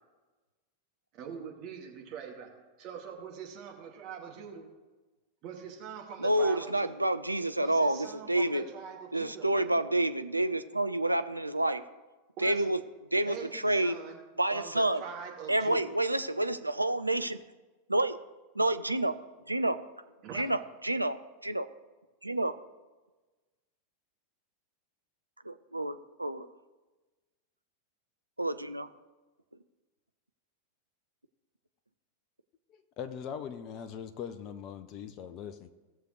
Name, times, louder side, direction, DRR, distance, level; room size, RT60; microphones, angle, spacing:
voice 1, 1.1-2.5 2.8-4.7 5.4-7.0 7.6-9.8 12.4-12.6 13.3-14.2 14.5-16.0 20.2-20.4, right 7 dB, 40° right, 0 dB, 2.1 m, -43 dB
voice 2, 6.2-8.6 9.1-11.8 12.4-12.8 13.1-14.0 14.4-15.0 15.5-17.4 17.9-18.2 18.6-19.1 19.5-19.8 20.3-20.6 20.8-21.7 22.2-22.5 25.5-26.5 28.4-28.9, right 1 dB, 85° right, 10 dB, 0.5 m, -28 dB
voice 3, 32.7-35.7, left 8 dB, 35° left, 10 dB, 0.6 m, -41 dB
17.0 x 6.6 x 3.2 m, 1.2 s
figure-of-eight pair, 90°, 0 cm